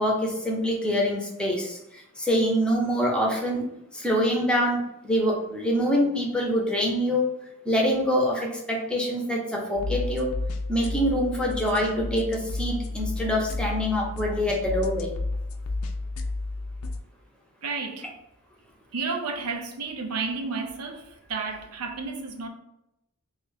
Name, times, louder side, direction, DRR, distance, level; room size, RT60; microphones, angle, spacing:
voice 1, 0.0-3.6 3.9-7.3 7.6-10.3 10.7-15.1, equal, 5° left, 0.7 m, -25 dB
sound 1, 9.7-17.0, left 2 dB, 75° left, 0.4 m, -32 dB
voice 2, 17.6-18.1 18.9-21.0 21.3-22.5, right 4 dB, 85° right, 0.5 m, -31 dB
3.1 x 2.4 x 3.9 m
head